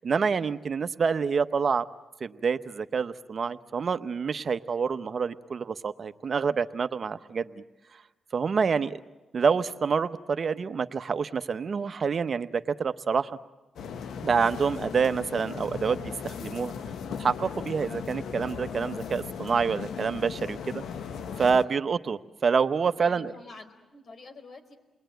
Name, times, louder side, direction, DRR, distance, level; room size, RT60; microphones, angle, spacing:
voice 1, 0.0-1.8 2.2-7.6 8.3-9.0 9.3-13.3 14.2-16.7 17.2-20.8 21.4-23.3, right 5 dB, 50° right, 12 dB, 0.9 m, -27 dB
sound 1, 13.8-21.7, left 7 dB, 85° left, 1.0 m, -37 dB
voice 2, 23.0-24.7, left 3 dB, 60° left, 6 dB, 4.1 m, -48 dB
29.0 x 20.5 x 9.2 m, 1.1 s
cardioid pair, 80°, 0 cm